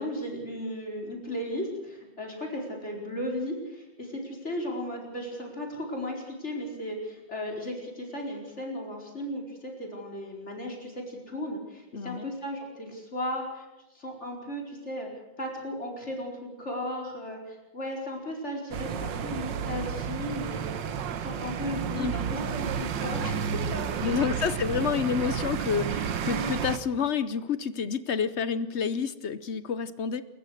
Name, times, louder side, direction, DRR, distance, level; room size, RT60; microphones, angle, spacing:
voice 1, 0.0-13.7 13.9-15.1 15.4-24.4, equal, 35° left, -1 dB, 4.9 m, -36 dB
voice 2, 11.9-12.3 21.9-22.1 24.0-30.2, left 6 dB, 55° left, 13 dB, 0.8 m, -29 dB
sound 1, 18.7-26.8, right 7 dB, 75° right, 1.6 m, -31 dB
29.0 x 14.5 x 6.5 m, 1.0 s
omnidirectional pair, 2.0 m